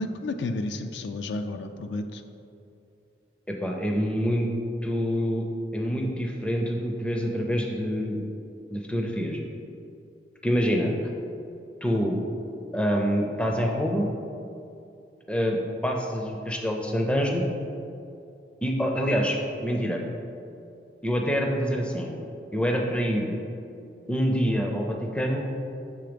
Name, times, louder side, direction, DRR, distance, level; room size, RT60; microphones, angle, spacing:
voice 1, 0.0-2.2, left 2 dB, 75° left, 7 dB, 0.4 m, -31 dB
voice 2, 3.5-4.5 4.8-5.4 5.7-8.2 8.7-9.4 10.4-10.9 11.8-12.2 12.7-14.1 15.3-17.5 18.6-20.0 21.0-22.1 22.5-23.4 24.1-25.4, equal, 5° left, 1 dB, 0.4 m, -26 dB
7.0 x 3.3 x 5.1 m, 2.7 s
head